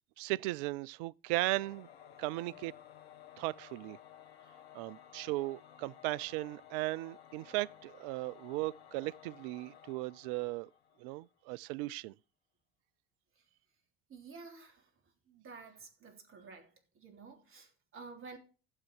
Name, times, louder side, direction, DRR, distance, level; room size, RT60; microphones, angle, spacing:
voice 1, 0.2-1.9 2.2-2.7 3.4-4.0 4.7-10.7 11.0-12.1, right 20 dB, 60° right, 0.4 m, -37 dB
Singing / Musical instrument, 1.3-11.3, left 10 dB, 75° left, 0.9 m, -56 dB
voice 2, 14.1-14.9 15.3-18.4, right 4 dB, 45° right, 3.4 m, -52 dB
12.0 x 7.5 x 4.6 m
figure-of-eight pair, 60°, 31 cm